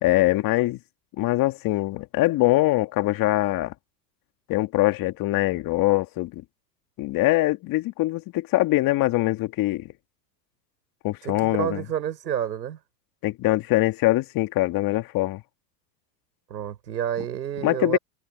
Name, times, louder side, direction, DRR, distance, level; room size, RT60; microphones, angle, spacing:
voice 1, 0.0-0.8 1.2-3.7 4.5-6.4 7.0-9.9 11.0-11.9 13.2-15.4 17.6-18.0, left 18 dB, 40° left, 2.2 m, -23 dB
voice 2, 11.2-12.8 16.5-18.0, right 10 dB, 90° right, 6.1 m, -29 dB
hypercardioid pair, 105°, 50 cm